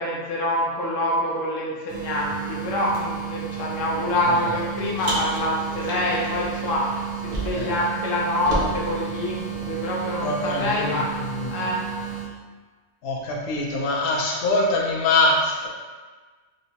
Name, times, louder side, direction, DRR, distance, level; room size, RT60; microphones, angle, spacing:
voice 1, 0.0-11.1 11.5-11.9, left 1 dB, 80° left, -4 dB, 1.1 m, -26 dB
sound 1, 1.9-12.3, right 9 dB, 75° right, 1.1 m, -33 dB
Car, 5.0-7.8 8.0-9.9, right 1 dB, 50° right, 0.7 m, -32 dB
voice 2, 10.2-11.5 13.0-15.7, left 2 dB, 60° left, -1 dB, 0.7 m, -23 dB
3.1 x 2.9 x 2.8 m, 1.4 s
omnidirectional pair, 1.3 m